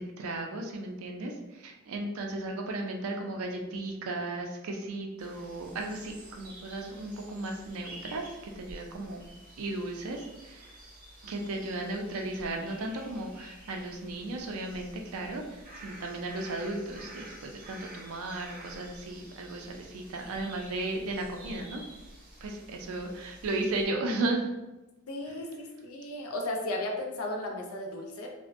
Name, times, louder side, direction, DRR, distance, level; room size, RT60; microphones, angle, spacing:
voice 1, 0.0-8.3 8.6-9.3 9.6-10.8 11.2-21.8 22.4-24.5, right 2 dB, 80° right, 2 dB, 0.4 m, -35 dB
sound 1, 5.2-23.9, right 1 dB, 40° right, 0.6 m, -50 dB
voice 2, 25.1-28.3, left 1 dB, 80° left, 2 dB, 0.5 m, -35 dB
2.5 x 2.1 x 2.4 m, 1.0 s
head